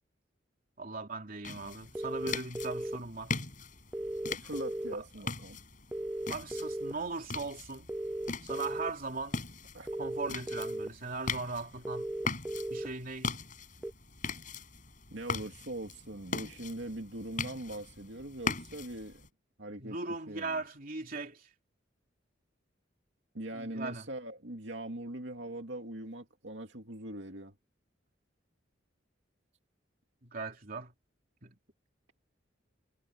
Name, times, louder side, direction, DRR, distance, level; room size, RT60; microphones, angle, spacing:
voice 1, 0.8-3.3 4.9-5.0 6.3-7.9 8.4-9.4 10.0-12.1 12.7-13.3 19.8-21.5 23.5-24.1 30.2-30.9 31.4-31.5, right 3 dB, 50° right, 3.1 m, -39 dB
sound 1, 1.4-19.3, left 4 dB, 45° left, 6.0 m, -41 dB
sound 2, 2.0-3.0 3.9-4.9 5.9-6.9 7.9-8.9 9.9-10.9 11.8-12.9 13.8-13.9, right 1 dB, 5° right, 0.4 m, -36 dB
voice 2, 4.2-5.6 9.7-9.9 15.1-19.2 19.6-20.0 20.3-20.6 23.3-27.5, right 1 dB, 65° right, 2.6 m, -41 dB
head